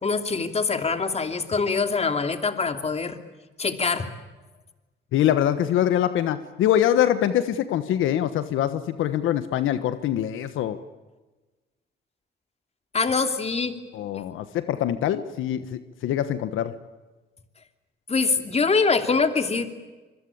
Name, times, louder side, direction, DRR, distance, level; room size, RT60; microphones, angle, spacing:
voice 1, 0.0-3.2 3.6-4.1 12.9-13.8 18.1-19.7, left 4 dB, 30° left, 7 dB, 2.9 m, -24 dB
voice 2, 5.1-10.8 13.9-16.8, left 11 dB, 85° left, 12 dB, 1.3 m, -24 dB
26.0 x 22.5 x 8.7 m, 1.2 s
cardioid pair, 90°, 20 cm